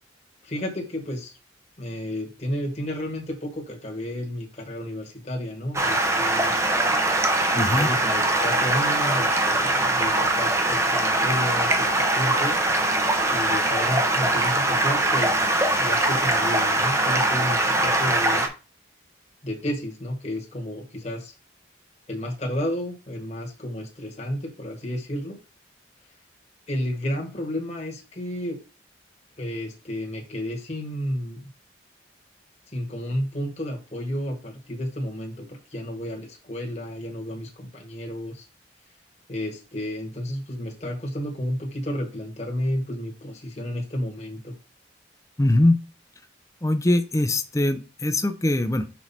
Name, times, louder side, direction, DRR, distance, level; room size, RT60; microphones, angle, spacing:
voice 1, 0.4-1.3 1.8-6.5 7.5-12.6 13.3-18.5 19.4-21.3 22.1-25.4 26.7-28.6 29.4-31.4 32.7-38.4 39.3-44.6, equal, 35° left, 0 dB, 1.4 m, -31 dB
Stream, 5.7-18.5, right 2 dB, 15° right, 0.8 m, -22 dB
voice 2, 7.5-7.9 45.4-45.8 46.6-48.9, left 1 dB, 15° left, 9 dB, 0.5 m, -22 dB
6.0 x 4.6 x 4.1 m, 0.32 s
head